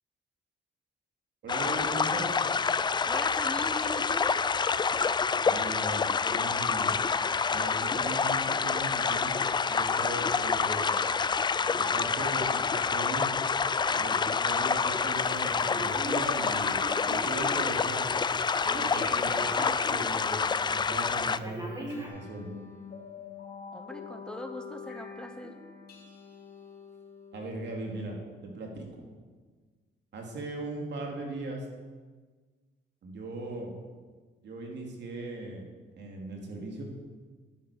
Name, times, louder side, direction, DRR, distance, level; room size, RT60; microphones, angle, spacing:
voice 1, 1.4-2.4 5.4-6.9 7.5-9.4 9.7-10.9 11.7-13.3 13.9-16.8 17.1-18.1 18.7-22.5 27.3-28.2 28.4-28.9 30.1-31.7 33.0-33.7 34.4-35.6 36.0-36.8, right 2 dB, 60° right, 1 dB, 2.6 m, -38 dB
sound 1, 1.5-21.4, left 5 dB, 25° left, 0.3 m, -27 dB
voice 2, 3.1-4.3 23.7-25.5, left 1 dB, 5° left, 6 dB, 0.8 m, -40 dB
Telephone, 15.6-17.9 18.6-20.1 20.5-20.6 21.4-22.1, right 1 dB, 20° right, 2.4 m, -39 dB
sound 2, 21.9-28.8, left 6 dB, 55° left, 2.2 m, -46 dB
10.0 x 9.4 x 5.0 m, 1.4 s
cardioid pair, 90°, 20 cm